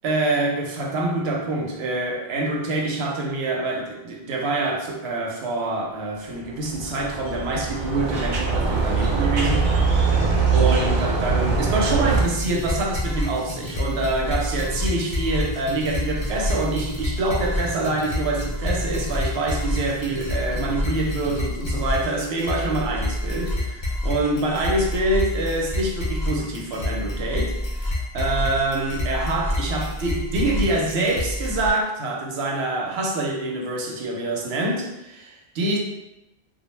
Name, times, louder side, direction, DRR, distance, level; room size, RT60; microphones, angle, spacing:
voice 1, 0.0-35.8, right 2 dB, 90° right, 0 dB, 0.8 m, -26 dB
sound 1, 6.4-12.2, right 4 dB, 55° right, 0.6 m, -22 dB
sound 2, 12.1-31.7, left 1 dB, 40° left, 0.4 m, -28 dB
2.3 x 2.0 x 3.1 m, 0.93 s
omnidirectional pair, 1.0 m